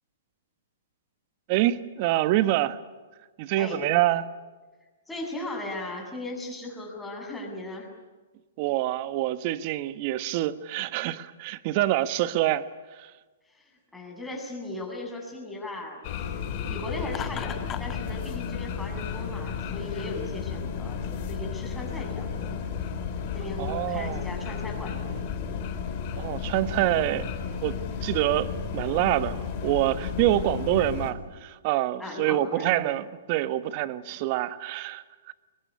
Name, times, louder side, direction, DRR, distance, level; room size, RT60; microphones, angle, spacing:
voice 1, 1.5-2.8 3.4-4.3 8.6-12.7 12.9-13.1 23.6-24.3 26.2-27.3 27.6-35.3, right 15 dB, 45° right, 13 dB, 1.3 m, -26 dB
voice 2, 5.1-7.9 13.5-16.3 16.7-22.5 23.3-25.6 32.0-33.0 34.1-34.2, left 2 dB, 5° left, 0 dB, 7.3 m, -38 dB
sound 1, 16.0-31.1, left 6 dB, 45° left, 4.2 m, -33 dB
Laughter, 17.1-18.0, left 10 dB, 25° left, 1.4 m, -36 dB
23.5 x 21.5 x 9.9 m, 1.3 s
hypercardioid pair, 125°, 0 cm